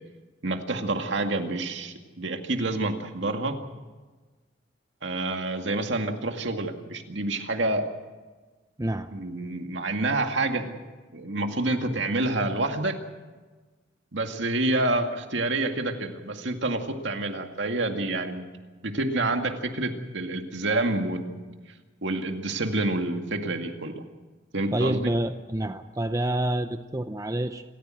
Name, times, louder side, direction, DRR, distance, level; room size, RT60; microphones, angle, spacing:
voice 1, 0.4-3.6 5.0-7.9 9.1-10.8 11.1-13.0 14.1-18.4 18.8-21.4 22.0-23.9 24.5-25.1, right 2 dB, 65° right, 5 dB, 2.2 m, -28 dB
voice 2, 24.7-27.6, right 1 dB, 15° right, 8 dB, 0.7 m, -27 dB
28.0 x 15.0 x 7.8 m, 1.3 s
head